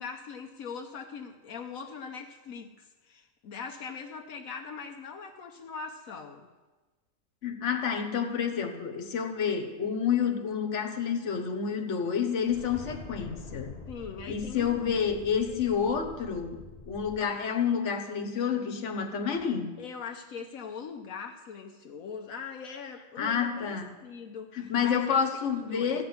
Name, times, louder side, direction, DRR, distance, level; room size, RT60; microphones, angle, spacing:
voice 1, 0.0-6.5 13.9-14.8 15.5-15.6 19.8-25.2 25.5-26.0, left 6 dB, 80° left, 3 dB, 1.3 m, -41 dB
voice 2, 7.4-13.8 14.3-19.8 23.2-24.0 24.5-26.0, left 7 dB, 60° left, 6 dB, 1.5 m, -29 dB
sound 1, 12.4-17.2, left 3 dB, 30° left, 0.9 m, -45 dB
14.5 x 6.2 x 9.5 m, 1.2 s
omnidirectional pair, 1.4 m